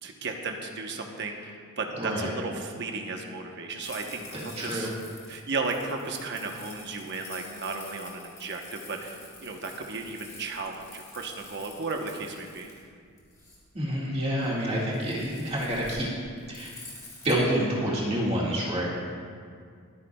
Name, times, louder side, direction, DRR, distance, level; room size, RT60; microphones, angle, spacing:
voice 1, 0.0-4.9 5.3-12.7, right 3 dB, 50° right, 3 dB, 1.0 m, -34 dB
voice 2, 2.0-2.3 4.3-4.9 13.7-16.1 16.5-16.7 17.2-18.9, equal, 30° right, -5 dB, 1.9 m, -28 dB
sound 1, 3.8-17.3, left 2 dB, 15° left, 2.1 m, -48 dB
22.5 x 9.6 x 2.3 m, 2.1 s
head